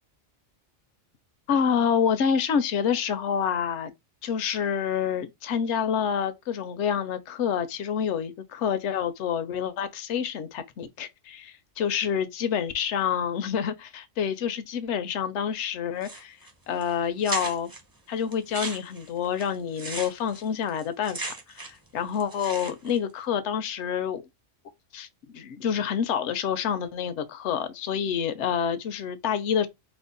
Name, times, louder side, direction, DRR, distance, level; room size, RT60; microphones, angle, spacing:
voice 1, 1.5-3.9 4.2-16.4 16.7-17.7 18.1-21.3 21.5-24.2 24.9-25.1 25.3-29.7, left 7 dB, 70° left, 0.9 m, -27 dB
sound 1, 16.0-16.5 16.8-16.9 17.2-17.8 18.3-21.9 22.1-23.0, right 2 dB, 25° right, 0.6 m, -36 dB
3.4 x 2.0 x 3.8 m
omnidirectional pair, 1.3 m